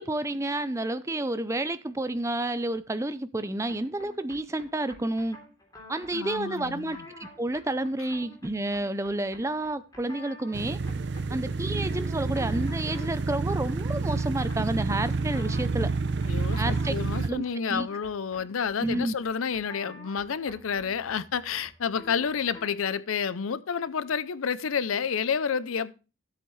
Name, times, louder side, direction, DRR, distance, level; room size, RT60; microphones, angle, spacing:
voice 1, 0.0-5.4 5.9-10.8 11.3-15.9 16.6-16.9 17.2-17.9 18.8-19.1, right 1 dB, 15° right, 0.5 m, -30 dB
sound 1, 3.7-22.9, left 1 dB, 20° left, 3.4 m, -50 dB
voice 2, 6.1-7.0 16.3-25.9, left 6 dB, 85° left, 0.5 m, -30 dB
sound 2, 10.5-17.3, right 3 dB, 55° right, 0.7 m, -29 dB
13.0 x 8.0 x 3.2 m
head